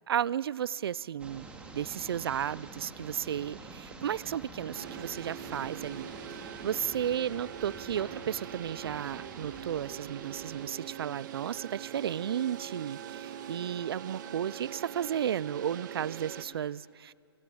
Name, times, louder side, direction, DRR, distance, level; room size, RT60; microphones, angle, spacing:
voice 1, 0.1-1.5 1.7-6.1 6.6-17.1, right 9 dB, 65° right, 23 dB, 0.5 m, -33 dB
sound 1, 1.2-10.7, right 3 dB, 10° right, 2.3 m, -48 dB
sound 2, 4.7-16.4, right 9 dB, 45° right, 1.8 m, -43 dB
29.0 x 18.5 x 8.6 m, 2.3 s
hypercardioid pair, 145°, 14 cm